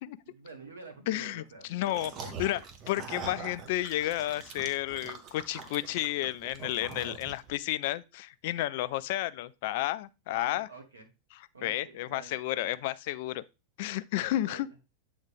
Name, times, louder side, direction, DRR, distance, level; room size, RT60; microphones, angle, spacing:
voice 1, 0.3-2.6 10.3-11.1 11.5-12.3 12.6-12.7 14.3-14.6, right 3 dB, 70° right, 1.4 m, -48 dB
voice 2, 1.1-2.1 2.4-2.6 2.9-10.7 11.3-13.4 13.8-14.7, left 15 dB, 50° left, 0.3 m, -32 dB
sound 1, 1.9-7.6, right 5 dB, 35° right, 0.9 m, -43 dB
7.9 x 3.5 x 3.5 m
figure-of-eight pair, 90°, 0 cm